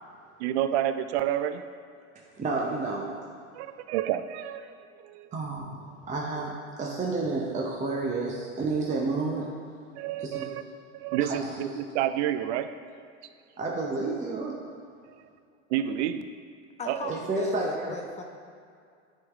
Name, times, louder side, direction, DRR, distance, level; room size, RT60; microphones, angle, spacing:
voice 1, 0.4-1.6 3.5-5.3 10.0-10.6 10.9-12.7 15.1-15.2 15.7-16.3 16.9-17.2, right 11 dB, 65° right, 11 dB, 0.5 m, -29 dB
voice 2, 2.3-3.1 5.3-9.5 10.2-10.5 11.2-11.4 13.6-14.6 17.1-18.0, right 3 dB, 20° right, -2 dB, 0.8 m, -30 dB
voice 3, 16.8-18.2, left 5 dB, 20° left, 3 dB, 0.3 m, -36 dB
9.0 x 3.7 x 3.5 m, 2.3 s
hypercardioid pair, 95°, 37 cm